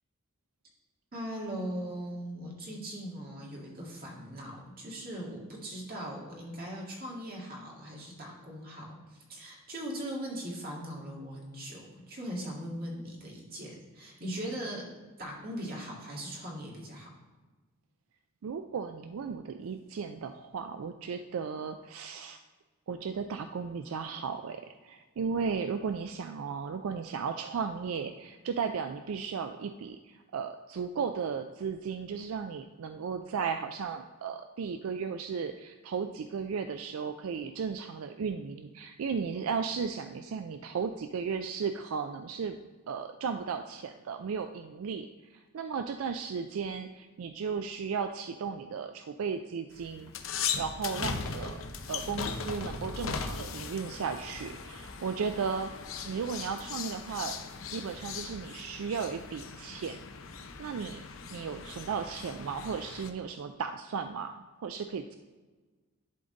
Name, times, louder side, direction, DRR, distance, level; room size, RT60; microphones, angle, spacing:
voice 1, 1.1-14.8 15.2-17.1, equal, 45° right, -2 dB, 1.9 m, -40 dB
voice 2, 18.4-22.4 22.9-42.6 42.9-51.6 51.9-55.7 56.1-57.4 57.7-60.0 60.6-61.0 61.3-65.1, right 6 dB, 80° right, 7 dB, 0.4 m, -35 dB
sound 1, 49.7-63.1, left 5 dB, 70° left, 0.6 m, -39 dB
11.0 x 3.9 x 3.9 m, 1.3 s
head